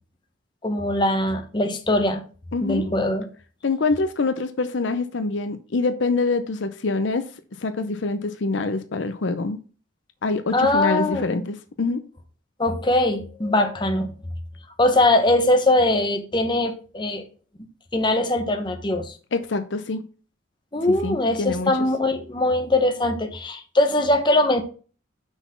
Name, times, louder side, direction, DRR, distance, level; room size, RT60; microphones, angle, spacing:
voice 1, 0.6-2.2 2.6-3.3 10.5-11.4 12.6-14.1 14.8-17.2 17.9-19.1 20.7-24.6, left 1 dB, 25° left, 0.9 m, -21 dB
voice 2, 2.5-3.0 3.6-7.3 7.6-9.6 10.2-12.0 19.3-20.0 20.9-21.7, left 3 dB, 65° left, 0.6 m, -25 dB
6.0 x 4.1 x 5.6 m
head